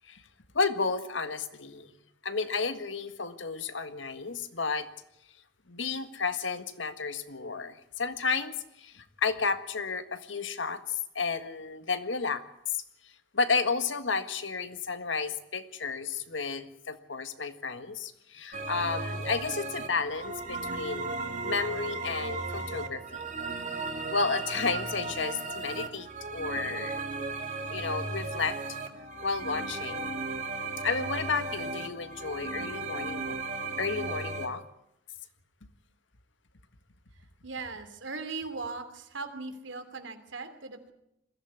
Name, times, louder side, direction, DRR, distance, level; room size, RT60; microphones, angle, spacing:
voice 1, 0.5-1.9 2.2-4.9 5.7-12.4 12.7-12.8 13.3-21.1 21.4-23.2 24.1-27.0 27.7-28.6 29.2-30.2 30.8-33.4 33.8-34.6, left 4 dB, 85° left, 10 dB, 1.7 m, -32 dB
sound 1, 18.5-34.5, right 3 dB, 40° right, 2.2 m, -35 dB
voice 2, 37.1-40.9, right 3 dB, 85° right, 8 dB, 3.0 m, -39 dB
21.5 x 15.5 x 9.4 m, 0.80 s
head